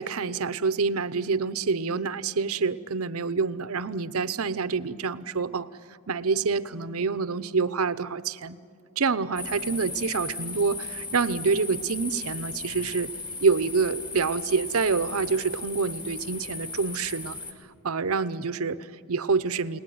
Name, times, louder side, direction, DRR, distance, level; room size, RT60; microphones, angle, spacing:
voice 1, 0.0-5.7 6.1-8.6 9.0-13.1 13.4-17.4 17.8-19.8, right 4 dB, 75° right, 14 dB, 0.8 m, -27 dB
sound 1, 9.4-17.5, left 3 dB, 20° left, 2.3 m, -37 dB
29.5 x 19.0 x 9.5 m, 2.2 s
head